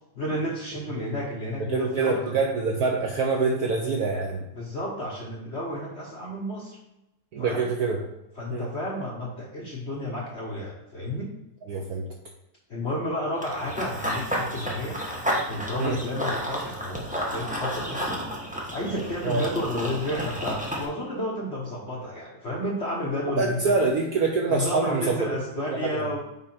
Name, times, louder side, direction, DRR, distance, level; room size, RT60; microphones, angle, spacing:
voice 1, 0.1-2.2 4.5-6.8 7.4-7.7 8.4-11.3 12.7-15.0 15.5-17.0 17.3-18.2 18.7-23.7 24.5-26.2, left 1 dB, 50° left, -2 dB, 0.9 m, -31 dB
voice 2, 1.7-4.4 7.3-8.0 8.5-8.7 11.7-12.1 15.8-16.0 19.2-19.4 23.4-25.4 25.7-26.1, right 4 dB, 65° right, 0 dB, 0.9 m, -25 dB
Run / Bird vocalization bird call bird song, 13.4-20.9, equal, 10° right, 0.4 m, -31 dB
5.5 x 4.8 x 4.2 m, 0.91 s
omnidirectional pair, 2.2 m